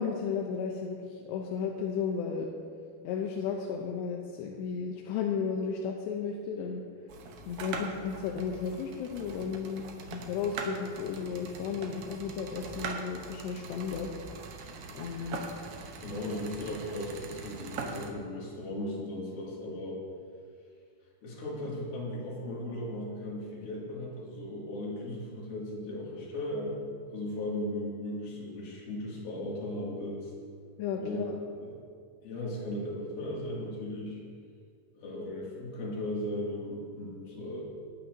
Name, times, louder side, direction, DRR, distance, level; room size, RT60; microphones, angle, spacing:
voice 1, 0.0-2.5 3.0-6.8 7.5-9.8 10.1-14.1 14.5-14.6 14.9-15.4 30.8-31.4, left 6 dB, 85° left, 0 dB, 2.9 m, -34 dB
sound 1, 7.1-18.1, right 4 dB, 90° right, 1.7 m, -42 dB
voice 2, 16.0-20.0 21.2-26.8 27.1-30.3 31.0-31.2 31.6-31.8 32.2-34.2 35.0-37.6, left 1 dB, 65° left, -5 dB, 4.0 m, -37 dB
19.5 x 8.8 x 2.7 m, 2.1 s
omnidirectional pair, 4.8 m